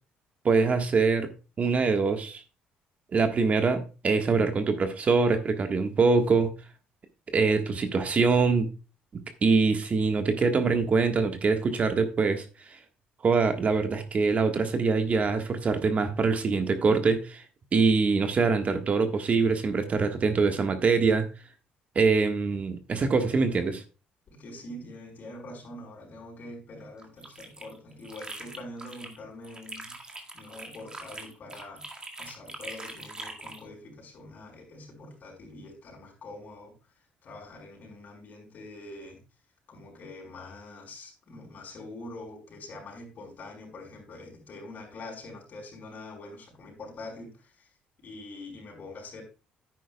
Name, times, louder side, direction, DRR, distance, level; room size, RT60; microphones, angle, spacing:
voice 1, 0.4-1.3 1.6-2.4 3.1-6.5 7.3-8.7 9.4-12.4 13.2-17.4 17.7-21.3 21.9-23.8, right 4 dB, 40° right, 6 dB, 1.5 m, -24 dB
voice 2, 24.3-29.9 30.3-31.8 32.2-36.7 37.2-39.2 39.7-47.7 48.0-49.2, left 2 dB, 55° left, 0 dB, 4.9 m, -44 dB
sound 1, 27.0-29.2 29.4-33.6, right 2 dB, 20° right, 1.9 m, -42 dB
10.5 x 9.2 x 2.3 m, 0.31 s
supercardioid pair, 80°, 4 cm